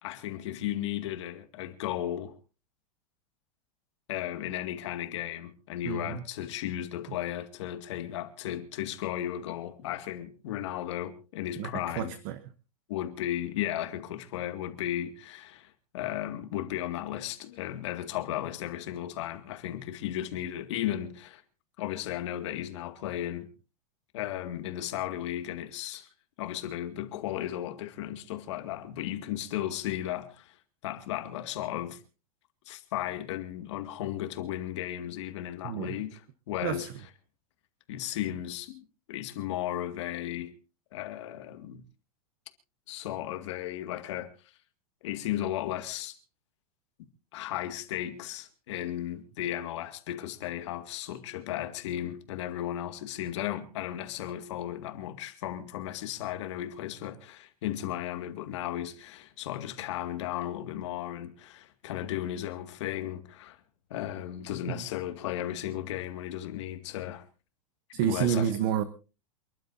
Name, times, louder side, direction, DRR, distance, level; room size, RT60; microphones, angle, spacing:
voice 1, 0.0-2.3 4.1-12.1 12.9-21.4 21.8-23.5 24.1-26.1 26.4-30.6 30.8-32.0 32.7-36.2 36.5-36.9 37.9-40.5 40.9-41.8 42.9-44.3 45.0-46.2 47.3-63.6 63.9-67.2 67.9-68.5, left 12 dB, 55° left, 2.2 m, -35 dB
voice 2, 5.8-6.2 11.6-12.4 35.6-35.9 36.6-36.9 64.7-64.9 67.9-68.8, right 9 dB, 40° right, 1.0 m, -30 dB
28.5 x 12.0 x 2.7 m
supercardioid pair, 175°, 18 cm